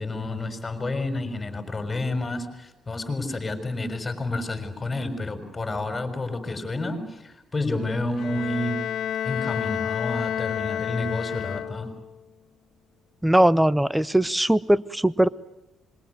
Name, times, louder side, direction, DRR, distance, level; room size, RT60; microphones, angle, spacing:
voice 1, 0.0-8.8 9.2-11.9, left 2 dB, 25° left, 8 dB, 6.1 m, -30 dB
Bowed string instrument, 8.2-12.1, left 10 dB, 70° left, 1.4 m, -30 dB
voice 2, 13.2-15.3, right 1 dB, 5° right, 17 dB, 1.0 m, -20 dB
26.5 x 23.0 x 9.6 m, 0.93 s
cardioid pair, 90°, 0 cm